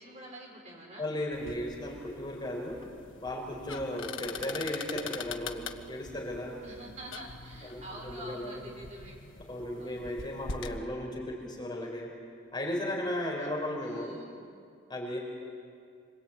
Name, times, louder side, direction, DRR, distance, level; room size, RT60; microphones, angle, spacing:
voice 1, 0.0-1.1 6.6-9.2 9.8-10.1 13.4-13.5 13.9-14.3, right 1 dB, 35° right, -2 dB, 6.4 m, -46 dB
voice 2, 1.0-2.8 3.2-6.6 7.6-8.6 9.4-12.1 12.5-14.1 14.4-14.5 14.9-15.2, left 1 dB, 25° left, -2 dB, 5.4 m, -35 dB
sound 1, 1.3-10.8, left 5 dB, 75° left, 1.5 m, -43 dB
26.5 x 24.0 x 9.3 m, 2.2 s
head